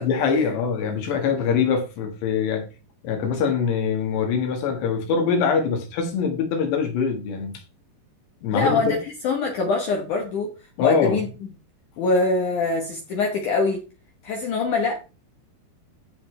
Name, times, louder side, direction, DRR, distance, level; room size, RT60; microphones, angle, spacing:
voice 1, 0.0-2.6 3.0-7.6 8.4-9.0 10.8-11.2, left 6 dB, 90° left, 3.9 m, -23 dB
voice 2, 8.5-9.0 9.2-10.5 10.8-11.3 12.0-13.8 14.2-15.0, left 3 dB, 65° left, 2.2 m, -23 dB
14.5 x 5.0 x 3.2 m
omnidirectional pair, 4.8 m